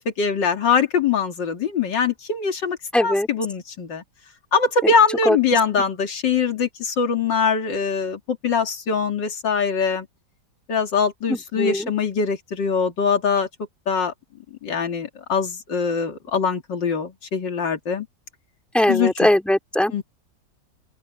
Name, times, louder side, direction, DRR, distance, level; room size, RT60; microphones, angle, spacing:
voice 1, 0.2-4.0 4.5-10.1 10.7-13.5 13.9-14.1 14.6-18.1 18.9-19.1 19.9-20.0, left 5 dB, 80° left, 3.1 m, -22 dB
voice 2, 2.9-3.3 4.8-4.9 5.3-5.4 11.3-11.9 18.7-20.0, left 1 dB, ahead, 2.4 m, -20 dB
open air
omnidirectional pair, 1.9 m